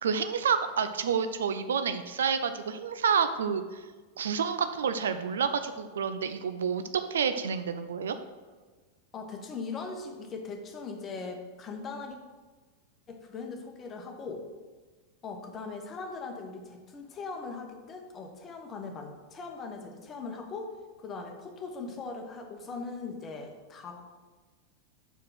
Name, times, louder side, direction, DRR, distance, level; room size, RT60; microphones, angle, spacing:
voice 1, 0.0-3.8 4.2-8.2, right 6 dB, 65° right, 10 dB, 0.4 m, -29 dB
voice 2, 9.1-12.2 13.1-14.4 15.2-20.7 21.0-24.0, left 4 dB, 25° left, 3 dB, 1.1 m, -40 dB
5.9 x 4.9 x 6.2 m, 1.3 s
figure-of-eight pair, 90°, 0 cm